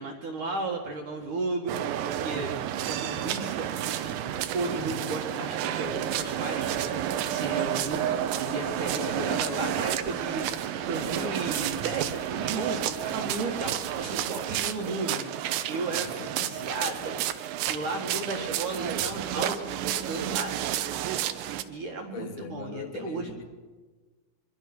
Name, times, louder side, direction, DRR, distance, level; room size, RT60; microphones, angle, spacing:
voice 1, 0.0-2.6 2.8-3.7 4.0-4.2 4.5-16.1 16.4-17.3 17.7-20.7 21.7-23.3, right 3 dB, 55° right, 1 dB, 2.7 m, -34 dB
sound 1, 1.7-21.6, right 11 dB, 75° right, 3.1 m, -31 dB
sound 2, 5.7-14.3, left 2 dB, 30° left, 3.0 m, -49 dB
voice 2, 9.0-9.9 16.0-16.7 22.1-23.4, left 6 dB, 60° left, 5 dB, 3.7 m, -41 dB
24.0 x 23.0 x 6.2 m, 1.3 s
omnidirectional pair, 5.5 m